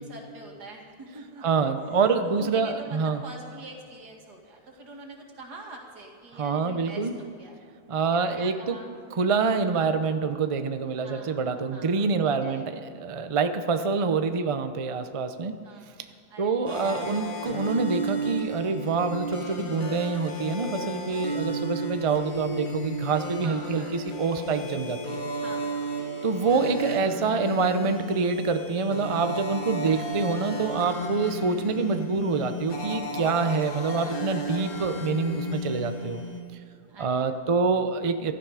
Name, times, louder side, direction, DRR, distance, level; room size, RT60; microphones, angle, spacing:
voice 1, 0.0-1.5 2.2-7.6 8.1-9.2 11.0-12.6 15.6-16.5 19.4-20.0 23.4-24.1 25.4-26.1 33.9-34.3 36.9-37.3, right 2 dB, 85° right, 1 dB, 2.7 m, -45 dB
voice 2, 1.4-3.2 6.3-7.1 7.9-8.8 9.1-15.5 16.4-25.2 26.2-36.2 37.0-38.3, right 4 dB, 45° right, 8 dB, 0.4 m, -26 dB
sound 1, 16.7-36.4, right 1 dB, 60° left, 2.1 m, -33 dB
16.5 x 12.5 x 4.9 m, 2.4 s
omnidirectional pair, 1.7 m